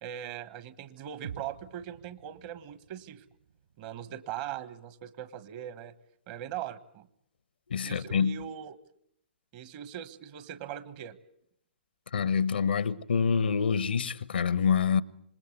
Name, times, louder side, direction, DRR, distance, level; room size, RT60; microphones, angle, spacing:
voice 1, 0.0-3.2 3.8-5.9 6.3-7.1 7.8-8.8 9.5-11.2, right 10 dB, 40° right, 1.4 m, -40 dB
sound 1, 1.2-5.6, right 8 dB, 70° right, 4.5 m, -49 dB
voice 2, 7.7-8.4 12.1-15.0, left 6 dB, 70° left, 0.9 m, -26 dB
26.5 x 21.0 x 8.0 m
figure-of-eight pair, 120°, 6 cm